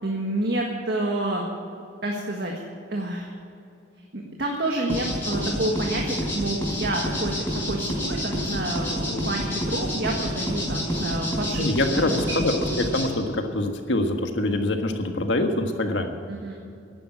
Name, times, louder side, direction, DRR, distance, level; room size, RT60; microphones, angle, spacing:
voice 1, 0.0-1.4 2.0-2.5 2.9-3.3 4.1-12.5 16.3-16.6, right 1 dB, 55° right, 0 dB, 1.6 m, -29 dB
sound 1, 4.9-13.0, equal, 10° left, 4.6 m, -28 dB
voice 2, 11.6-16.2, left 1 dB, 70° left, 5 dB, 1.6 m, -25 dB
11.5 x 10.5 x 9.0 m, 2.6 s
head